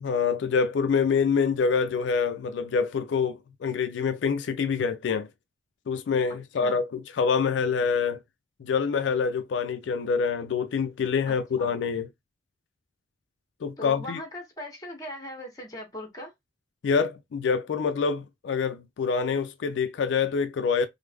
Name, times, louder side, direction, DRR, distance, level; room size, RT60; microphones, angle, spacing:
voice 1, 0.0-5.3 5.9-8.2 8.6-12.1 13.6-14.2 16.8-20.9, left 5 dB, 90° left, 0.4 m, -26 dB
voice 2, 11.3-11.7 13.8-16.3, left 1 dB, 20° left, 0.9 m, -39 dB
3.3 x 2.1 x 3.3 m
head